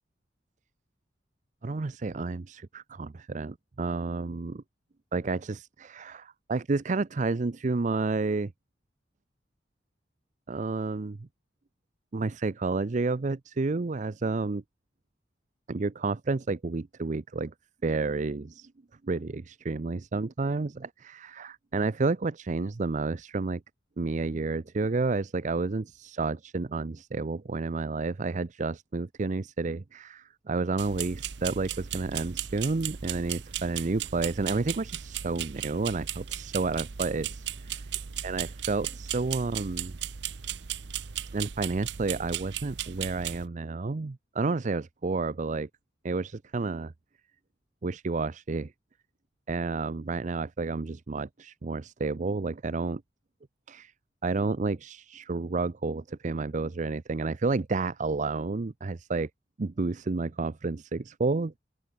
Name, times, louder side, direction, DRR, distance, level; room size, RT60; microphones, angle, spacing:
voice 1, 1.6-4.6 5.1-8.5 10.5-11.3 12.1-14.6 15.7-17.5 17.8-18.7 19.0-23.6 24.0-37.8 38.2-40.0 41.3-45.7 46.0-46.9 47.8-48.7 49.5-53.0 53.7-53.9 54.2-59.3 59.6-61.6, right 3 dB, 45° right, 0.5 m, -30 dB
sound 1, 30.8-43.5, right 10 dB, 70° right, 0.8 m, -36 dB
open air
head